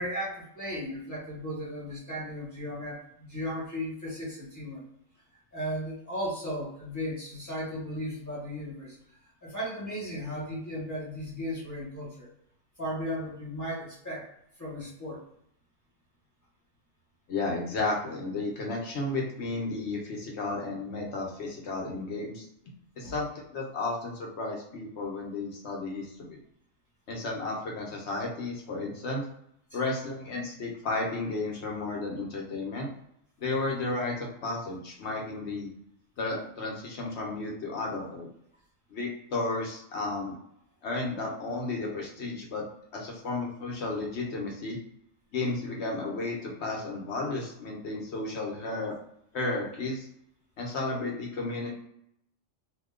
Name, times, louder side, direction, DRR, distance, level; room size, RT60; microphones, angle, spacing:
voice 1, 0.0-4.8 5.5-9.0 9.4-12.3 12.8-14.3 14.6-15.2 23.0-23.1 29.7-29.8, equal, 15° left, -8 dB, 1.3 m, -35 dB
voice 2, 17.3-22.4 23.0-26.4 27.1-29.2 29.7-32.9 33.4-35.7 36.2-38.3 38.9-40.4 40.8-42.6 42.9-44.8 45.3-48.9 49.3-50.1 50.6-51.7, left 2 dB, 60° left, -1 dB, 1.0 m, -33 dB
2.8 x 2.2 x 3.6 m, 0.74 s
omnidirectional pair, 1.4 m